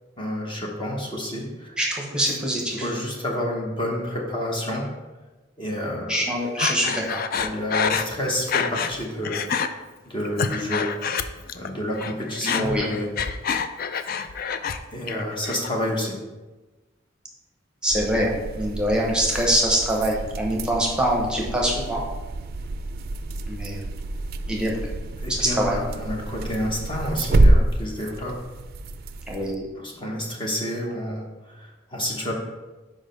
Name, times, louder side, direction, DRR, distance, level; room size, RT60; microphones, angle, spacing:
voice 1, 0.2-1.8 2.7-4.9 5.6-6.3 7.3-9.8 10.0-10.9 11.5-13.1 14.9-16.2 25.2-28.4 29.8-32.3, equal, 25° left, -1 dB, 1.0 m, -29 dB
voice 2, 1.8-2.9 6.1-7.2 12.4-12.9 17.8-18.3 18.5-22.0 23.5-23.8 24.5-24.7 25.3-25.7 29.3-29.7, equal, 5° right, -3 dB, 1.0 m, -24 dB
Breathing, 6.6-9.0 9.3-9.7 10.2-11.7 12.0-14.8 15.1-15.7, left 6 dB, 50° left, 0.3 m, -27 dB
sound 1, 17.9-29.5, right 2 dB, 55° right, 0.4 m, -26 dB
5.1 x 4.9 x 5.3 m, 1.2 s
head